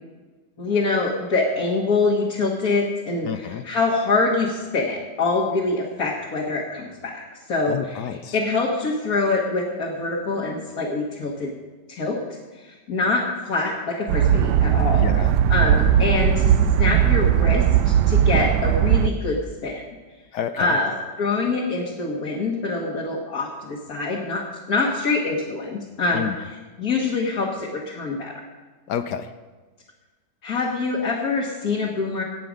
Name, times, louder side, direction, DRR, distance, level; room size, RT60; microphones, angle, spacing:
voice 1, 0.6-7.2 7.5-8.0 8.3-11.5 11.9-15.1 15.5-16.5 16.8-19.8 20.6-20.9 21.2-26.3 26.8-28.3 30.4-32.2, left 3 dB, 60° left, -2 dB, 2.0 m, -25 dB
voice 2, 3.2-3.7 7.7-8.4 15.0-15.4 20.3-20.8 26.1-26.4 28.9-29.3, left 9 dB, 75° left, 9 dB, 1.2 m, -29 dB
sound 1, 14.1-19.1, right 9 dB, 80° right, 1.2 m, -18 dB
18.0 x 7.7 x 5.1 m, 1.3 s
omnidirectional pair, 1.8 m